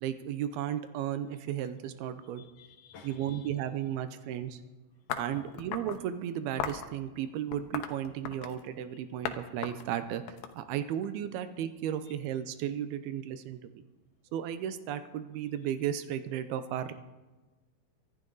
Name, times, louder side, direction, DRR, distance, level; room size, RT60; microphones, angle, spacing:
voice 1, 0.0-2.4 3.0-4.6 5.2-13.8 14.3-16.9, right 10 dB, 80° right, 11 dB, 2.6 m, -34 dB
voice 2, 2.4-3.5, left 7 dB, 60° left, 3 dB, 2.3 m, -54 dB
sound 1, 5.1-6.0 6.6-6.9 7.5-8.6 9.3-9.4 9.6-11.1, left 9 dB, 80° left, 2.9 m, -37 dB
24.0 x 11.5 x 3.9 m, 1.2 s
omnidirectional pair, 4.5 m